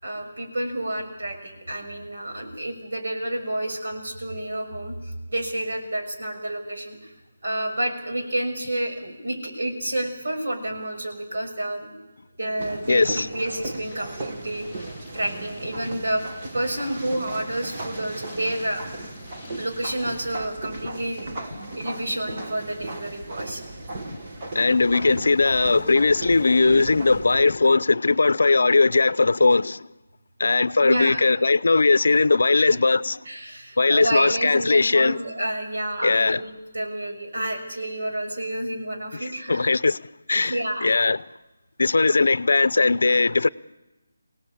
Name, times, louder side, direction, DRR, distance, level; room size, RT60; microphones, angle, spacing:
voice 1, 0.0-7.1 7.4-12.0 12.4-16.2 16.5-18.8 19.6-23.6 30.8-31.2 32.5-32.6 33.2-39.6 40.3-40.9 42.2-42.3, right 1 dB, 60° right, 6.5 m, -29 dB
sound 1, 12.6-27.5, right 2 dB, 25° right, 1.7 m, -36 dB
voice 2, 12.9-13.3 21.5-21.6 24.1-24.2 24.5-29.9 30.4-33.2 33.8-35.2 36.0-36.4 39.2-40.0 40.3-41.2 41.8-43.5, left 3 dB, 65° left, 0.7 m, -19 dB
sound 2, 13.9-20.4, left 3 dB, 10° left, 6.0 m, -49 dB
26.0 x 17.5 x 8.7 m
hypercardioid pair, 175°, 0 cm